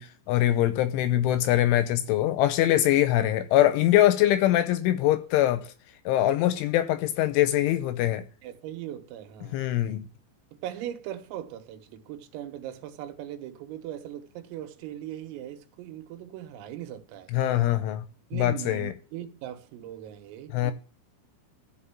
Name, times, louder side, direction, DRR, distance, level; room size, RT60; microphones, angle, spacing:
voice 1, 0.0-5.7 6.1-8.3 9.5-10.1 17.3-18.0 18.3-18.9 20.5-20.7, left 13 dB, 80° left, 2.9 m, -23 dB
voice 2, 8.4-9.6 10.5-17.3 18.3-20.7, right 11 dB, 85° right, 3.9 m, -39 dB
14.5 x 5.5 x 7.2 m
omnidirectional pair, 6.0 m